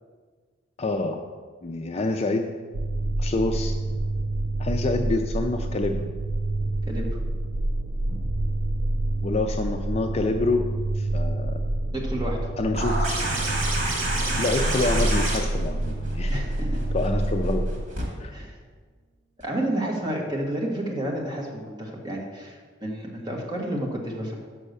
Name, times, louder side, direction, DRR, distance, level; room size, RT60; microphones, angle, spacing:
voice 1, 0.8-1.2 1.6-2.5 3.2-3.7 4.6-6.1 9.2-11.6 12.6-13.2 14.3-16.4 16.9-17.7 18.2-18.3, left 2 dB, 30° left, 5 dB, 0.4 m, -27 dB
sound 1, 2.7-17.9, right 1 dB, 85° right, 0.5 m, -27 dB
sound 2, 8.1-10.7, left 1 dB, 50° right, 2.2 m, -44 dB
voice 2, 11.9-12.5 16.3-16.8 18.3-18.6 19.4-24.3, right 1 dB, 20° right, -2 dB, 1.3 m, -30 dB
sound 3, 12.7-18.0 19.4-19.5, right 2 dB, 65° right, 2.1 m, -29 dB
6.4 x 5.5 x 6.6 m, 1.5 s
head